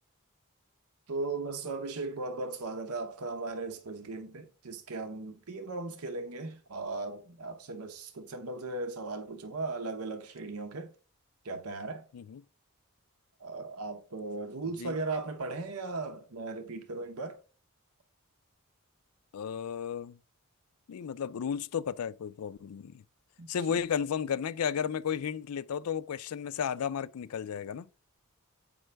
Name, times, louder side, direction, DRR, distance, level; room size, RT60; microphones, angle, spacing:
voice 1, 1.1-10.9 11.4-12.0 13.4-17.4 23.4-23.8, right 3 dB, 85° right, 0.8 m, -37 dB
voice 2, 12.1-12.4 14.7-14.9 19.3-20.2 20.9-23.0 23.5-27.9, left 7 dB, 75° left, 0.4 m, -33 dB
7.7 x 5.4 x 3.3 m
head